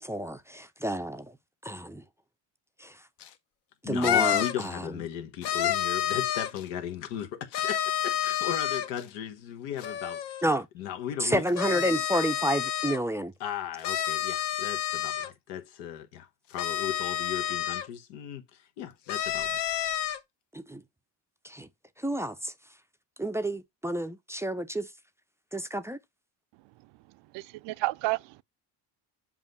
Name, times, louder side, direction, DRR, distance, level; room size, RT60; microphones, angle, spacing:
voice 1, 0.0-1.3 1.6-2.0 2.8-3.0 3.8-4.9 10.4-10.7 11.2-13.3 20.5-20.8 21.4-21.7 22.0-22.5 23.2-24.9 25.5-26.0, right 1 dB, 5° right, 0.4 m, -30 dB
sound 1, 3.2-3.3 4.0-4.7 5.4-6.6 7.5-9.0 9.8-10.4 11.5-13.0 13.8-15.3 16.6-17.9 19.1-20.2, left 11 dB, 60° left, 0.9 m, -29 dB
voice 2, 3.8-10.4 10.7-11.4 13.4-19.6, left 10 dB, 90° left, 1.1 m, -37 dB
voice 3, 27.3-28.4, right 20 dB, 65° right, 0.5 m, -31 dB
7.4 x 2.6 x 5.4 m
supercardioid pair, 90°, 47 cm